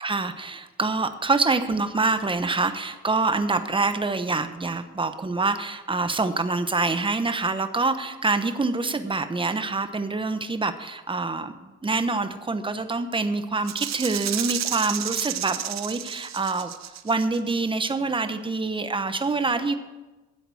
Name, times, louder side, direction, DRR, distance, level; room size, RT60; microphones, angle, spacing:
voice 1, 0.0-16.7 17.0-19.7, right 3 dB, 15° right, 9 dB, 1.0 m, -26 dB
Rattle (instrument), 13.7-17.5, right 11 dB, 60° right, 0.8 m, -31 dB
11.0 x 7.8 x 8.5 m, 1.1 s
cardioid pair, 90°, 30 cm